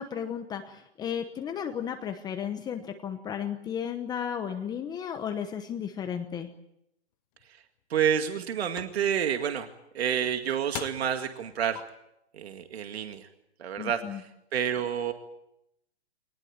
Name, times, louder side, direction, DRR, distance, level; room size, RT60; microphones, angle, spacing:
voice 1, 0.0-6.5 13.8-14.2, left 8 dB, 10° left, 6 dB, 1.0 m, -34 dB
sound 1, 7.4-7.5 8.1-8.4 8.8-9.0 10.2-10.3 10.7-11.2 11.8-11.9, left 15 dB, 35° left, 1.2 m, -40 dB
voice 2, 7.9-9.7 9.9-11.8 12.3-13.3 13.6-15.1, right 8 dB, 65° right, 6 dB, 2.2 m, -29 dB
24.0 x 19.5 x 8.8 m, 0.82 s
hypercardioid pair, 150°, 34 cm